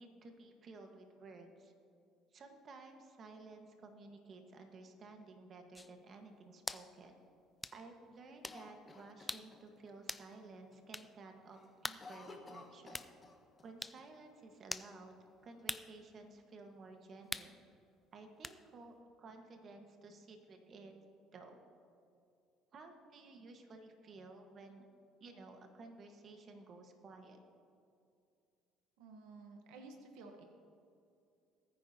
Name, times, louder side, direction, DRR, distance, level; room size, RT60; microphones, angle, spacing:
voice 1, 0.0-1.7 2.3-7.1 7.7-13.1 13.6-15.1 15.4-17.6 18.1-20.9 21.3-21.6 22.7-24.8 25.2-27.4, right 3 dB, 45° right, 4 dB, 1.4 m, -54 dB
sound 1, 5.7-5.9 6.7-6.9 7.6-7.8 8.4-8.6 9.3-9.5 10.1-10.3 10.9-11.1 11.8-12.0 12.9-13.1 13.8-14.0 14.7-14.9 15.7-15.9 17.3-17.5 18.4-18.6, left 2 dB, 10° left, 0.4 m, -42 dB
Cough, 8.4-9.9 10.3-10.4 10.7-11.1 11.4-13.7 14.0-14.1 14.8-15.6, left 3 dB, 25° left, 1.3 m, -55 dB
voice 2, 29.0-30.4, right 3 dB, 85° right, 4 dB, 1.1 m, -53 dB
19.5 x 9.5 x 2.8 m, 2.5 s
cardioid pair, 105°, 0 cm